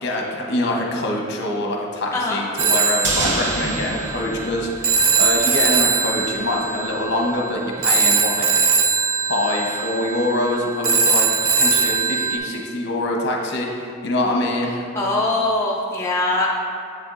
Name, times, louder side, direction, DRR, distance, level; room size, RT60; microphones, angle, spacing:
voice 1, 0.0-8.5 9.3-14.7, left 1 dB, 55° left, 0 dB, 0.8 m, -24 dB
Telephone, 2.6-12.4, right 5 dB, 85° right, 0.5 m, -21 dB
sound 1, 3.0-5.4 5.7-5.8, right 2 dB, 55° right, 0.8 m, -27 dB
voice 2, 14.9-16.5, left 2 dB, 15° left, -4 dB, 0.4 m, -21 dB
7.5 x 6.9 x 2.5 m, 2.3 s
head